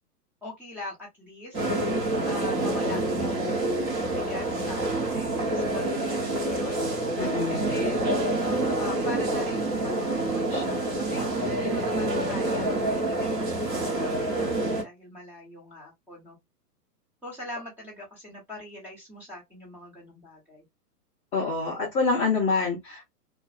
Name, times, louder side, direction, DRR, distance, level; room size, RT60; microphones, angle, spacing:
voice 1, 0.4-1.7 2.2-6.8 7.5-8.3 8.8-16.4 17.2-20.7, left 1 dB, 5° right, 1.0 m, -42 dB
sound 1, 1.5-14.8, right 2 dB, 20° right, 0.9 m, -27 dB
voice 2, 7.2-7.7 21.3-23.0, left 4 dB, 15° left, 0.7 m, -26 dB
2.6 x 2.4 x 2.4 m
hypercardioid pair, 140°, 47 cm